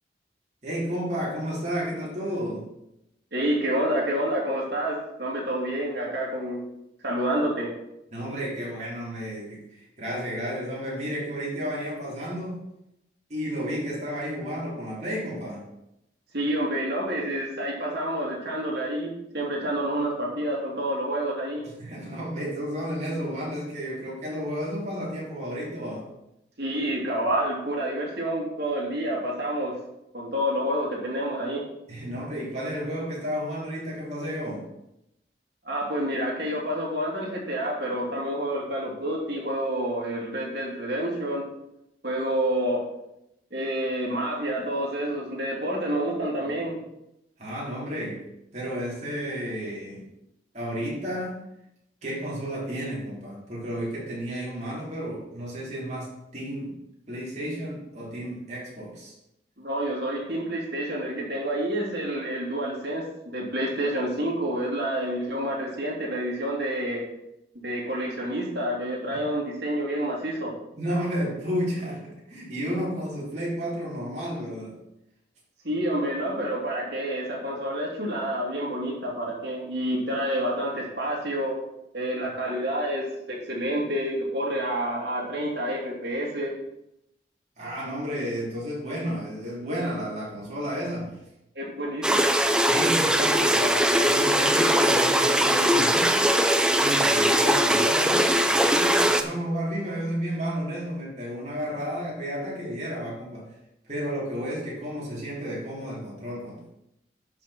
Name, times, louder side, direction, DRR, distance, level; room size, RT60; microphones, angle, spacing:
voice 1, 0.6-2.7 8.1-12.6 13.3-15.6 21.6-26.1 31.9-34.7 47.4-48.2 48.5-50.1 50.5-51.4 52.0-56.7 57.1-59.1 69.1-69.2 70.8-74.8 87.6-91.2 92.6-96.2 96.7-103.5 103.8-106.7, equal, 40° right, -5 dB, 3.6 m, -32 dB
voice 2, 3.3-6.6 7.0-7.7 16.3-21.7 26.6-29.7 30.1-31.6 35.6-41.4 42.0-42.8 43.5-46.8 59.6-63.0 63.3-67.0 67.6-70.5 75.6-81.6 81.9-86.5 91.5-92.2, right 1 dB, 65° right, -3 dB, 3.0 m, -28 dB
sound 1, 92.0-99.2, equal, 5° right, 0.5 m, -21 dB
11.5 x 5.7 x 4.3 m, 0.85 s
head